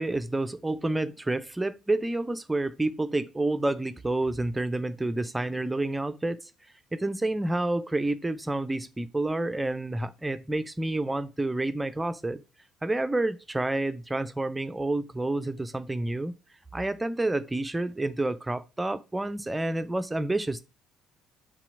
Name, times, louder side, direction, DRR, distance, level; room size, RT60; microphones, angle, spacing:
voice 1, 0.0-6.5 6.9-12.4 12.8-16.3 16.7-20.6, right 2 dB, 10° right, 0.7 m, -29 dB
6.0 x 4.1 x 5.8 m
figure-of-eight pair, 55°, 0 cm